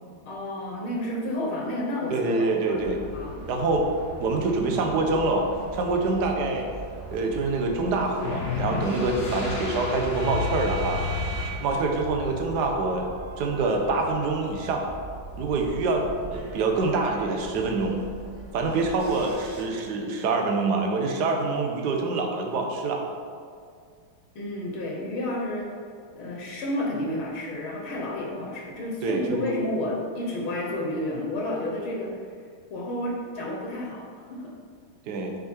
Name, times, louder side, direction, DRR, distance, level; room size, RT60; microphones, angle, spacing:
voice 1, 0.3-3.4 24.4-25.7 26.2-32.2 32.7-34.5, left 1 dB, 75° left, -1 dB, 1.9 m, -31 dB
voice 2, 2.1-3.0 3.5-3.8 4.2-5.5 5.7-6.7 7.1-11.0 11.6-13.1 13.4-14.9 15.4-18.0 18.5-23.0 29.0-29.5 35.1-35.3, right 3 dB, 60° right, 2 dB, 1.3 m, -25 dB
sound 1, 2.7-19.6, right 2 dB, 40° right, 2.1 m, -41 dB
sound 2, 8.2-12.1, left 3 dB, 50° left, 1.4 m, -31 dB
8.4 x 5.1 x 4.4 m, 2.2 s
omnidirectional pair, 2.4 m